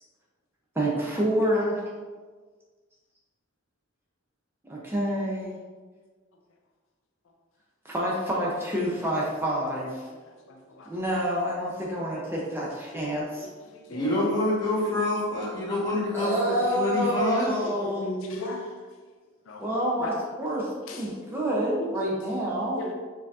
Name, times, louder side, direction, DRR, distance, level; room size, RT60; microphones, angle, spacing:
voice 1, 0.8-1.8 4.7-5.6 7.9-10.1 10.9-13.5 16.1-18.1 19.6-20.1 20.4-22.8, equal, 10° right, -4 dB, 0.5 m, -28 dB
voice 2, 10.5-10.9 13.6-14.1 17.0-17.1 17.6-18.7 19.5-19.6 20.0-20.2 20.9-21.1 21.6-21.9 22.8-22.9, left 1 dB, 85° left, 2 dB, 0.5 m, -36 dB
voice 3, 13.9-17.5, left 1 dB, 20° left, -8 dB, 1.1 m, -26 dB
4.2 x 2.7 x 2.4 m, 1.4 s
head